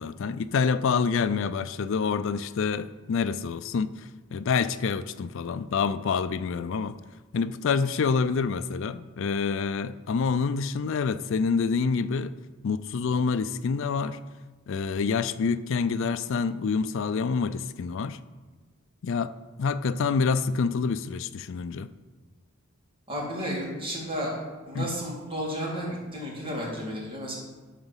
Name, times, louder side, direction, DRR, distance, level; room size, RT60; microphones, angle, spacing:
voice 1, 0.0-7.0 7.3-12.3 12.6-14.2 14.7-18.2 19.0-19.3 19.6-21.9 24.7-24.9, left 5 dB, 65° left, 0.4 m, -27 dB
voice 2, 23.1-24.3 24.7-27.4, equal, 25° right, 2.5 m, -32 dB
11.5 x 4.0 x 7.2 m
head